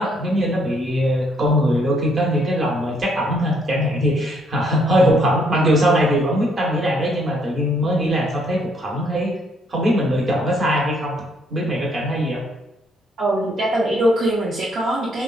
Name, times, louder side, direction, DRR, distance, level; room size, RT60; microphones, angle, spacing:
voice 1, 0.0-9.3 9.7-11.2 11.5-12.4, equal, 35° right, -3 dB, 1.0 m, -20 dB
voice 2, 13.2-15.2, right 1 dB, 65° right, -4 dB, 0.5 m, -21 dB
2.9 x 2.3 x 2.3 m, 0.89 s
cardioid pair, 90°, 0 cm